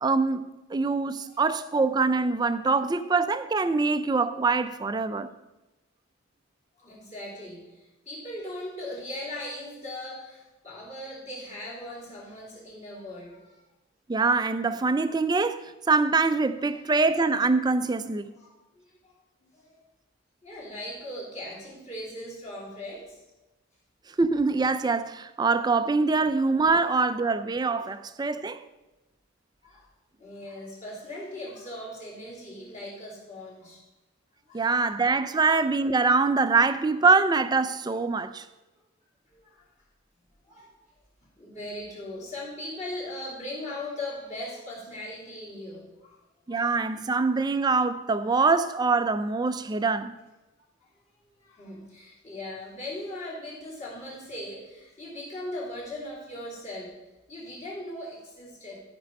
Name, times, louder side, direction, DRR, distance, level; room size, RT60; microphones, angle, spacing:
voice 1, 0.0-5.3 14.1-18.3 24.2-28.6 34.5-38.4 46.5-50.1, right 4 dB, 20° right, 0.3 m, -24 dB
voice 2, 6.8-13.6 15.0-15.1 18.3-18.5 18.7-19.8 20.4-23.2 29.6-29.9 30.2-33.8 34.5-34.7 39.3-39.6 40.5-40.7 41.4-46.2 46.5-46.8 50.8-50.9 51.3-56.9 57.3-58.8, left 1 dB, 35° left, 3.1 m, -39 dB
13.0 x 5.3 x 5.3 m
head